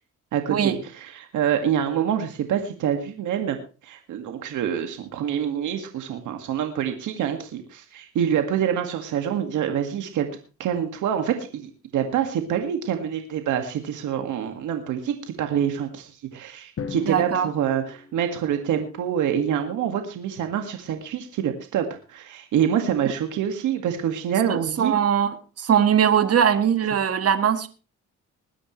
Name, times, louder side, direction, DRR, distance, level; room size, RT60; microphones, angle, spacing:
voice 1, 0.3-3.6 3.8-10.3 10.6-24.9, right 9 dB, 80° right, 5 dB, 2.1 m, -26 dB
Drum, 16.8-18.9, left 6 dB, 50° left, 1.7 m, -38 dB
voice 2, 17.0-17.5 24.5-27.7, right 8 dB, 50° right, 9 dB, 1.8 m, -21 dB
21.0 x 10.0 x 3.2 m, 0.34 s
cardioid pair, 90°, 30 cm